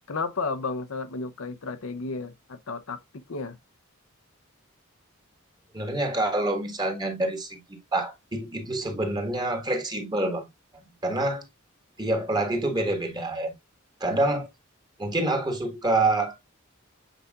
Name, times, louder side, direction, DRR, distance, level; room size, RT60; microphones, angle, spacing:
voice 1, 0.1-3.6, left 3 dB, 75° left, 0.8 m, -33 dB
voice 2, 5.7-10.5 10.7-11.5 12.0-13.6 14.0-14.5 15.0-16.4, right 2 dB, 20° right, 1.6 m, -27 dB
8.2 x 4.9 x 2.4 m
head